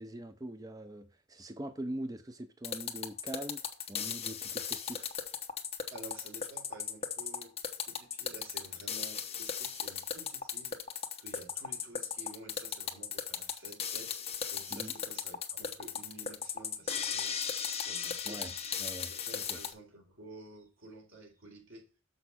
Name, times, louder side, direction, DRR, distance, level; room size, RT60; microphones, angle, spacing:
voice 1, 0.0-3.6 3.9-5.1 14.7-14.9 18.3-19.6, right 1 dB, 20° right, 0.6 m, -43 dB
sound 1, 2.6-19.7, left 7 dB, 30° left, 1.1 m, -37 dB
voice 2, 5.9-7.5 7.8-10.8 11.2-14.2 14.5-17.4 17.7-18.4 19.1-21.9, right 2 dB, 80° right, 3.9 m, -51 dB
7.0 x 6.3 x 4.1 m
head